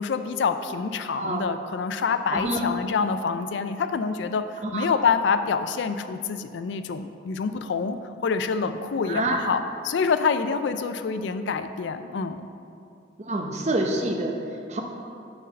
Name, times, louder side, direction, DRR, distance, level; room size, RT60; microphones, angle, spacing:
voice 1, 0.0-8.0 8.2-12.4, left 5 dB, 70° left, 10 dB, 0.4 m, -26 dB
voice 2, 2.3-2.6 4.6-4.9 9.1-9.4 13.3-14.4 14.7-14.8, right 2 dB, 35° right, 2 dB, 0.6 m, -26 dB
6.5 x 4.7 x 6.3 m, 2.5 s
head